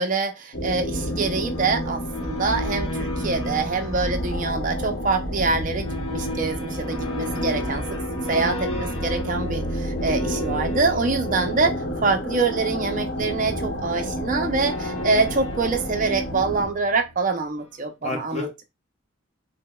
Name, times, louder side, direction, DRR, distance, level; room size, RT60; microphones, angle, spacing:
voice 1, 0.0-7.8 8.3-18.5, right 3 dB, 35° right, 0.5 m, -25 dB
sound 1, 0.5-16.7, equal, 55° left, 0.9 m, -31 dB
sound 2, 0.6-17.2, left 1 dB, 80° left, 0.8 m, -33 dB
voice 2, 1.0-1.3 8.7-9.0 18.0-18.6, left 2 dB, 30° left, 0.7 m, -33 dB
4.9 x 2.1 x 2.2 m
head